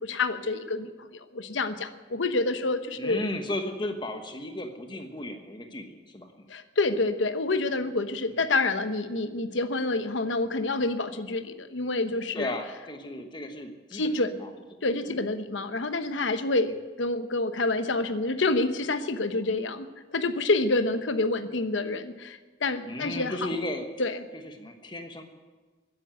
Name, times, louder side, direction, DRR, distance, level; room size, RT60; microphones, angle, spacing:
voice 1, 0.0-3.2 6.5-12.5 13.9-14.4 14.8-16.7 17.0-23.5 24.0-24.2, left 2 dB, 80° left, 10 dB, 1.0 m, -28 dB
voice 2, 3.0-6.5 8.3-8.4 12.3-14.5 15.1-15.2 16.7-16.8 22.8-23.9 24.4-25.2, left 1 dB, 25° left, 5 dB, 1.1 m, -35 dB
15.0 x 9.9 x 9.1 m, 1.3 s
head